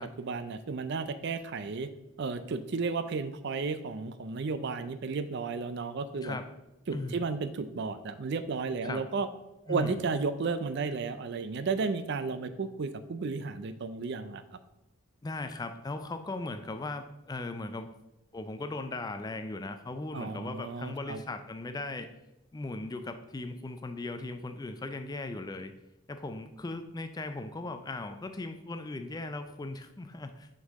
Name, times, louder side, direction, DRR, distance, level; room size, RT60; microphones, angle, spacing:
voice 1, 0.0-1.9 2.2-6.4 6.9-9.3 9.7-14.4 20.1-21.2, right 4 dB, 50° right, 12 dB, 0.4 m, -33 dB
voice 2, 9.7-10.0 15.2-17.9 18.3-22.1 22.5-25.7 26.1-30.5, left 2 dB, 20° left, 9 dB, 0.3 m, -38 dB
6.3 x 5.5 x 3.5 m, 0.97 s
head